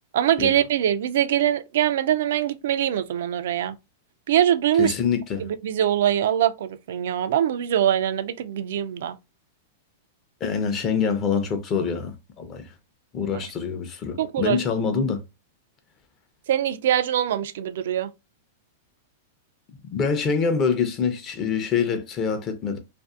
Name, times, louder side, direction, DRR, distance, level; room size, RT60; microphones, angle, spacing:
voice 1, 0.1-3.7 4.3-4.9 5.4-9.2 14.2-14.6 16.5-18.1, right 10 dB, 70° right, 0.3 m, -23 dB
voice 2, 4.8-5.5 10.4-12.7 13.1-15.2 19.9-22.8, left 6 dB, 30° left, 0.6 m, -25 dB
2.5 x 2.5 x 2.4 m
hypercardioid pair, 135°, 0 cm